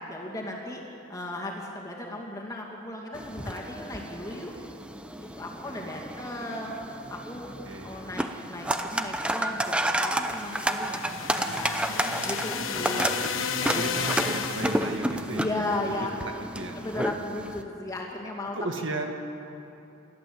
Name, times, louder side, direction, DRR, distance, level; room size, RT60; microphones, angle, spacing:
voice 1, 0.1-4.6 5.2-6.8 7.1-7.5 7.8-11.9 12.2-13.2 13.6-13.9 15.3-16.2 16.8-18.6, left 1 dB, 15° left, -1 dB, 2.4 m, -36 dB
sound 1, 3.1-17.6, right 1 dB, 5° right, 0.7 m, -31 dB
voice 2, 5.4-6.0 7.5-8.0 12.8-13.1 13.6-16.8 18.5-19.0, right 2 dB, 60° right, 3 dB, 1.9 m, -36 dB
sound 2, 10.2-15.1, left 6 dB, 70° left, 1.1 m, -33 dB
29.0 x 12.5 x 7.9 m, 2.8 s
head